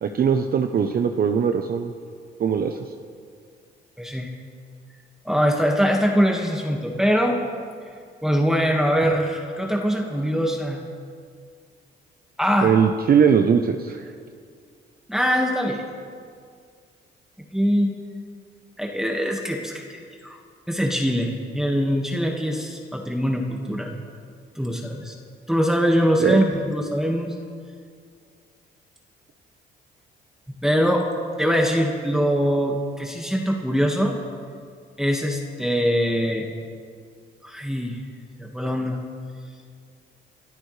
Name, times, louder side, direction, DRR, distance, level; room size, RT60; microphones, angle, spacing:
voice 1, 0.0-1.9 2.4-2.8 12.6-14.0 26.2-26.4, right 7 dB, 50° right, 6 dB, 0.8 m, -20 dB
voice 2, 4.0-4.3 5.3-7.4 8.2-10.8 12.4-12.7 15.1-15.8 17.5-17.9 18.8-20.4 20.7-23.9 24.6-25.2 25.5-27.3 30.6-31.1 31.4-34.2 35.0-36.5 37.4-38.0 38.4-39.0, equal, ahead, 0 dB, 1.7 m, -22 dB
29.5 x 12.5 x 3.3 m, 2.1 s
cardioid pair, 90°, 20 cm